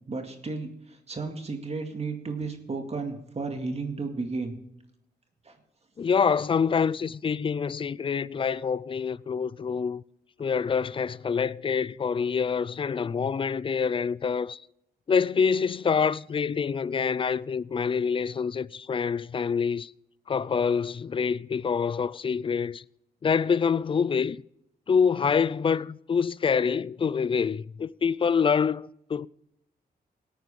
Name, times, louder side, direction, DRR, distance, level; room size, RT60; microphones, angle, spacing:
voice 1, 0.1-4.5 5.5-5.6, right 4 dB, 40° right, 2.1 m, -33 dB
voice 2, 6.0-10.0 10.4-14.6 15.1-19.9 20.3-22.8 23.2-24.4 24.9-29.3, left 6 dB, 30° left, 0.4 m, -26 dB
17.5 x 9.2 x 3.7 m
cardioid pair, 75°, 17 cm